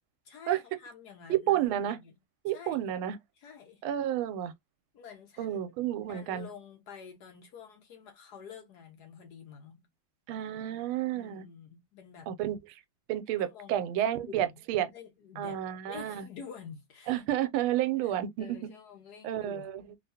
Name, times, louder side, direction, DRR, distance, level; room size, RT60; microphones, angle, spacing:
voice 1, 0.3-2.2 2.5-2.9 3.4-3.9 4.9-5.6 6.0-9.8 11.1-12.3 13.4-14.6 14.9-17.2 18.0-19.7, left 7 dB, 65° left, 1.1 m, -49 dB
voice 2, 1.3-2.0 2.4-3.2 3.8-4.5 5.4-6.5 10.3-11.4 12.3-12.8 13.1-14.9 15.4-16.3 17.1-18.7 19.2-19.8, right 12 dB, 90° right, 1.4 m, -31 dB
3.5 x 2.4 x 2.7 m
omnidirectional pair, 2.2 m